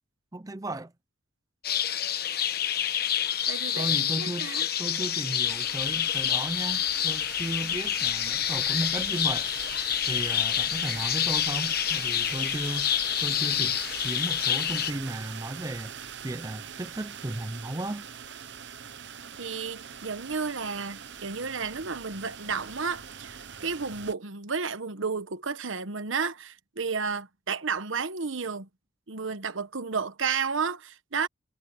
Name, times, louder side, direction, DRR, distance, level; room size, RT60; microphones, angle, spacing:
voice 1, 0.3-0.9 3.8-4.5 4.8-9.5 10.1-12.9 13.2-15.9 16.2-18.1, right 1 dB, 15° right, 0.5 m, -35 dB
sound 1, 1.6-14.9, left 10 dB, 50° left, 1.1 m, -28 dB
voice 2, 3.5-4.7 19.4-28.7 29.1-31.3, right 5 dB, 75° right, 1.1 m, -32 dB
sound 2, 5.4-24.1, right 8 dB, 60° right, 0.9 m, -42 dB
head